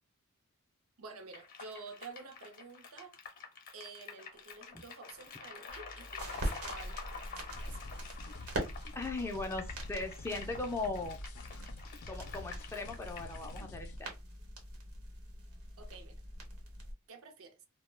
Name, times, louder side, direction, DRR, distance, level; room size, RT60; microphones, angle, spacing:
voice 1, 1.0-3.2 3.7-7.9 15.8-16.2 17.1-17.7, right 4 dB, 70° right, 0.5 m, -50 dB
sound 1, 1.3-13.6, left 5 dB, 40° left, 0.7 m, -48 dB
sound 2, 5.7-16.9, right 1 dB, 85° right, 0.9 m, -43 dB
sound 3, 7.5-14.0, left 2 dB, 80° left, 0.4 m, -49 dB
voice 2, 9.0-11.2 12.1-14.1, left 3 dB, 10° left, 0.3 m, -38 dB
2.2 x 2.1 x 3.1 m
head